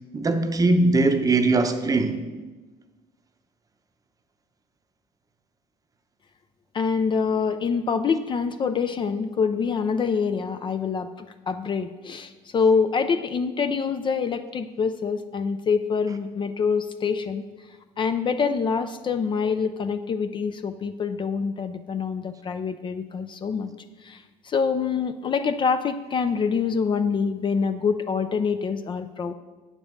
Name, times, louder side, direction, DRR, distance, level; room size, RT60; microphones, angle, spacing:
voice 1, 0.1-2.2, right 2 dB, 25° right, 0.7 m, -20 dB
voice 2, 6.7-17.4 18.0-23.7 24.0-29.3, left 5 dB, 35° left, 0.4 m, -25 dB
8.3 x 5.3 x 6.3 m
cardioid pair, 120°, 14 cm